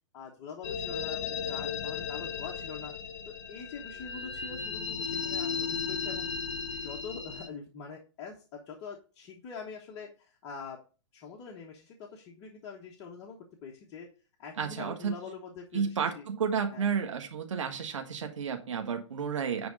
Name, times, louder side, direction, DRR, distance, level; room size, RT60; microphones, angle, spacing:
voice 1, 0.1-2.9 3.3-6.3 6.7-10.8 11.1-14.1 14.4-16.2 16.7-16.9, left 5 dB, 25° left, 0 dB, 1.0 m, -44 dB
sound 1, 0.6-7.5, left 6 dB, 60° left, 1.1 m, -35 dB
voice 2, 14.6-15.1 15.7-19.7, right 6 dB, 80° right, 4 dB, 1.6 m, -31 dB
10.0 x 3.6 x 4.9 m, 0.35 s
hypercardioid pair, 160°, 16 cm